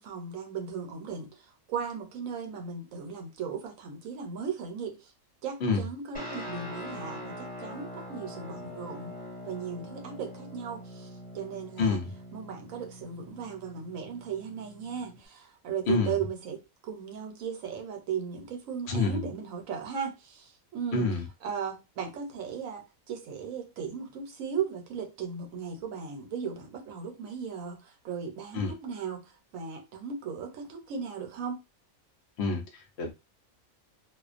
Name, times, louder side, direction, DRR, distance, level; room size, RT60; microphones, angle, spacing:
voice 1, 0.0-5.1 5.4-9.2 9.4-11.1 11.3-12.0 12.3-21.1 21.4-31.6, right 6 dB, 75° right, 1.0 m, -37 dB
Guitar, 6.1-15.3, equal, 15° left, 0.3 m, -43 dB
voice 2, 11.8-12.1 15.9-16.2 18.9-19.3 20.9-21.3 28.5-28.7 32.4-33.1, left 3 dB, 60° left, 0.8 m, -28 dB
2.4 x 2.1 x 2.4 m
omnidirectional pair, 1.4 m